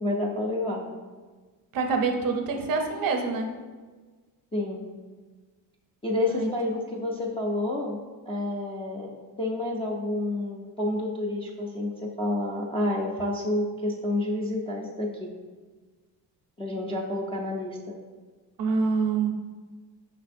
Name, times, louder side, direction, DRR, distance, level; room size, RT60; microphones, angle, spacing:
voice 1, 0.0-0.9 4.5-4.9 6.0-8.0 8.3-9.1 9.4-15.3 16.6-18.0, left 1 dB, 15° left, -3 dB, 0.3 m, -29 dB
voice 2, 1.7-3.5 6.3-6.5 18.6-19.3, right 4 dB, 55° right, 3 dB, 0.6 m, -26 dB
5.1 x 3.3 x 2.5 m, 1.4 s
cardioid pair, 115°, 42 cm